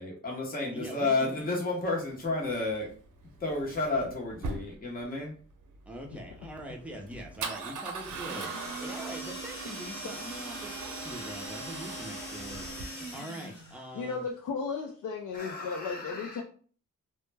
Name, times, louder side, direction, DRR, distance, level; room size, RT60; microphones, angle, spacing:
voice 1, 0.0-2.9 3.4-5.3 15.3-16.4, left 2 dB, 30° left, -2 dB, 0.7 m, -32 dB
voice 2, 0.7-1.4 5.9-14.2, right 1 dB, 5° right, 0 dB, 0.5 m, -43 dB
Male speech man speaking / Car / Engine starting, 2.1-13.2, right 4 dB, 80° right, 0.6 m, -41 dB
sound 1, 8.0-13.9, equal, 65° left, 1.2 m, -42 dB
voice 3, 13.9-16.4, left 5 dB, 80° left, 1 dB, 0.5 m, -35 dB
2.1 x 2.1 x 3.2 m, 0.43 s
wide cardioid pair, 115°, 31 cm